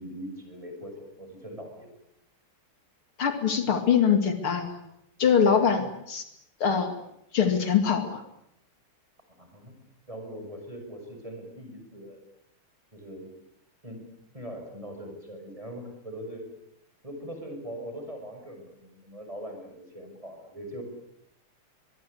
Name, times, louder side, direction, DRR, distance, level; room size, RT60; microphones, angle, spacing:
voice 1, 0.0-2.0 9.4-9.8 10.1-12.2 12.9-13.3 13.8-14.0 14.3-16.4 17.0-20.8, equal, 15° right, 4 dB, 6.6 m, -41 dB
voice 2, 3.2-4.8 5.2-6.2 6.6-7.0 7.3-8.2, left 7 dB, 75° left, 7 dB, 3.2 m, -23 dB
23.5 x 23.5 x 8.4 m, 0.77 s
omnidirectional pair, 2.4 m